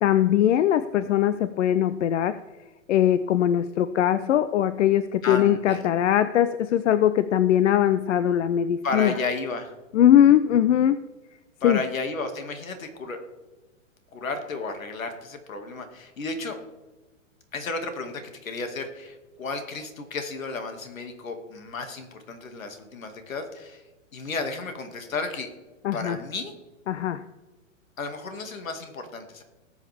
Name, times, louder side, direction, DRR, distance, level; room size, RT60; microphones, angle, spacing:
voice 1, 0.0-2.4 2.9-9.1 9.9-11.0 11.6-11.8 25.8-26.2 26.9-27.2, left 10 dB, 65° left, 14 dB, 0.6 m, -21 dB
voice 2, 5.2-5.9 8.8-9.8 11.6-13.2 14.1-16.6 17.5-23.8 24.1-25.5 25.9-26.5 28.0-29.4, left 3 dB, 80° left, 6 dB, 2.3 m, -33 dB
18.5 x 7.3 x 3.5 m, 1.2 s
hypercardioid pair, 130°, 40 cm